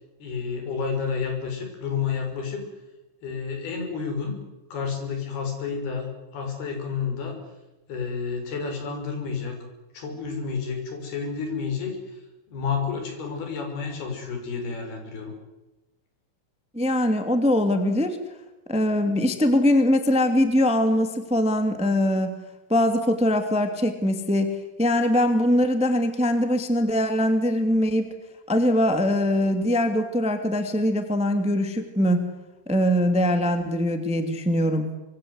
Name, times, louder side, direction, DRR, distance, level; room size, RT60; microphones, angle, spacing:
voice 1, 0.2-2.7 3.2-4.4 4.7-7.4 7.9-9.6 9.9-12.2 12.5-15.3, left 5 dB, 80° left, 4 dB, 7.5 m, -30 dB
voice 2, 16.7-18.2 18.7-22.4 22.7-24.5 24.8-28.1 28.5-32.2 32.7-34.9, left 1 dB, ahead, 7 dB, 1.7 m, -22 dB
25.5 x 24.0 x 8.1 m, 1.0 s
omnidirectional pair, 4.4 m